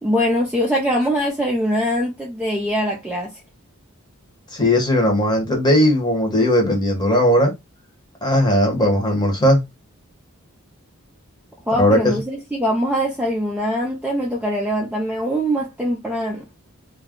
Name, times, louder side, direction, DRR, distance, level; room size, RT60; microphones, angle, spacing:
voice 1, 0.0-3.4 11.7-16.5, equal, 5° right, 0.4 m, -22 dB
voice 2, 4.5-7.5 8.2-9.6 11.8-12.2, left 1 dB, 20° left, 1.0 m, -17 dB
2.3 x 2.2 x 3.6 m
head